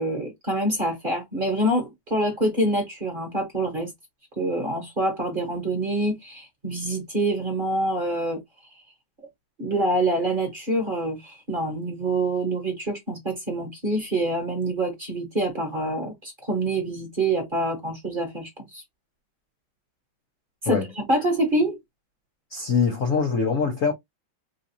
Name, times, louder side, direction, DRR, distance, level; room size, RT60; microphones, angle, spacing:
voice 1, 0.0-3.9 4.4-8.4 9.6-18.8 20.6-21.8, right 1 dB, 30° right, 1.2 m, -26 dB
voice 2, 22.5-23.9, left 5 dB, 65° left, 0.8 m, -23 dB
3.9 x 2.4 x 2.7 m
omnidirectional pair, 2.2 m